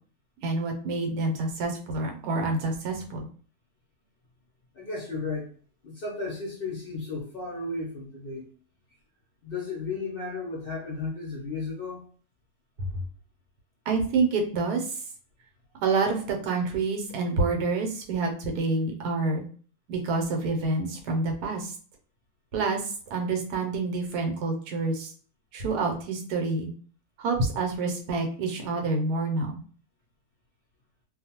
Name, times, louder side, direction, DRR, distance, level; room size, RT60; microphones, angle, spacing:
voice 1, 0.4-3.3 12.9-13.0 13.9-15.0 15.8-19.4 19.9-21.7 22.5-25.1 25.5-26.7 27.2-29.6, right 3 dB, 90° right, 2 dB, 1.2 m, -28 dB
voice 2, 4.7-5.5 5.8-8.5 9.4-12.0, left 3 dB, 55° left, -3 dB, 0.7 m, -34 dB
2.5 x 2.3 x 2.8 m, 0.43 s
omnidirectional pair, 1.6 m